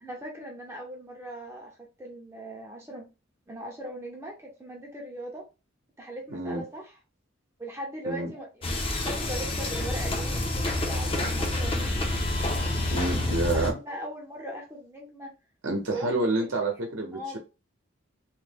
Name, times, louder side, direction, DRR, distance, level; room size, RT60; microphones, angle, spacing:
voice 1, 0.0-3.1 3.5-5.5 6.0-6.9 7.6-12.1 13.4-15.3 15.9-16.5 17.1-17.4, right 1 dB, 15° right, 0.6 m, -39 dB
voice 2, 6.3-6.6 8.1-8.3 12.9-13.8 15.6-17.4, right 2 dB, 65° right, 0.8 m, -28 dB
sound 1, 8.6-13.7, left 1 dB, 25° left, 0.6 m, -28 dB
3.1 x 2.1 x 3.3 m
head